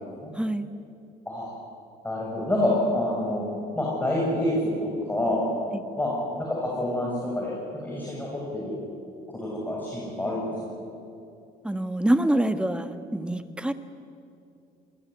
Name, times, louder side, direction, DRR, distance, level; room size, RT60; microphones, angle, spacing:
voice 1, 0.3-0.7 5.7-5.8 11.6-13.7, right 1 dB, 5° right, 9 dB, 1.5 m, -25 dB
voice 2, 2.0-3.5 3.7-5.4 6.0-6.1 6.4-8.7 9.3-10.5, left 1 dB, 10° left, -4 dB, 7.0 m, -27 dB
27.0 x 20.0 x 9.5 m, 2.6 s
cardioid pair, 110°, 17 cm